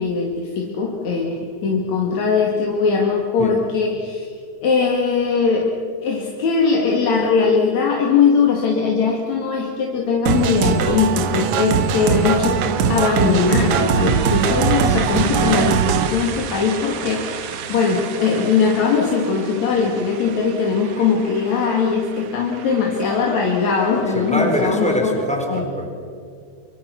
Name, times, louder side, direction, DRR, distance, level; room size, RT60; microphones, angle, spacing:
voice 1, 0.0-4.3 4.6-5.7 6.0-12.6 12.9-15.8 16.1-25.2 25.5-25.6, left 5 dB, 75° left, -1 dB, 3.4 m, -20 dB
sound 1, 10.3-16.1, right 6 dB, 85° right, 2.6 m, -20 dB
sound 2, 11.6-25.0, right 7 dB, 60° right, 2.2 m, -33 dB
voice 2, 23.9-25.9, equal, ahead, 1 dB, 4.0 m, -24 dB
27.5 x 24.5 x 5.9 m, 2.2 s
omnidirectional pair, 3.3 m